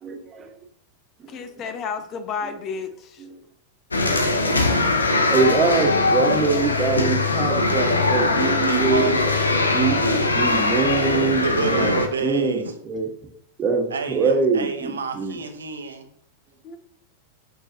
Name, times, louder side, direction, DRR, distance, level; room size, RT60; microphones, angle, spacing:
voice 1, 0.0-0.5 1.2-1.4 2.4-2.5 3.2-3.4 5.3-9.2 9.6-13.1 13.6-15.4, right 4 dB, 25° right, 3 dB, 1.6 m, -24 dB
voice 2, 1.3-3.2 16.6-16.8, left 6 dB, 35° left, 10 dB, 0.9 m, -32 dB
sound 1, 3.9-12.1, left 2 dB, 75° left, 1.0 m, -21 dB
voice 3, 8.6-9.5 11.4-12.7 13.9-16.1, right 5 dB, 70° right, 6 dB, 1.1 m, -29 dB
9.2 x 6.2 x 2.9 m, 0.67 s
figure-of-eight pair, 90°, 0 cm